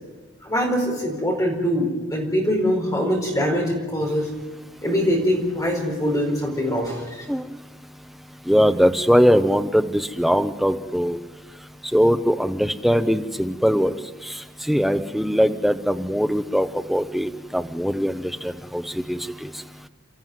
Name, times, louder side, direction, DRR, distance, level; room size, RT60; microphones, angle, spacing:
voice 1, 0.4-4.3 4.8-7.2, equal, 15° left, 0 dB, 4.7 m, -23 dB
voice 2, 8.5-11.2 11.9-13.9 14.7-18.1 18.4-18.8 19.1-19.2, equal, ahead, 7 dB, 0.8 m, -20 dB
28.5 x 14.0 x 9.4 m, 1.3 s
head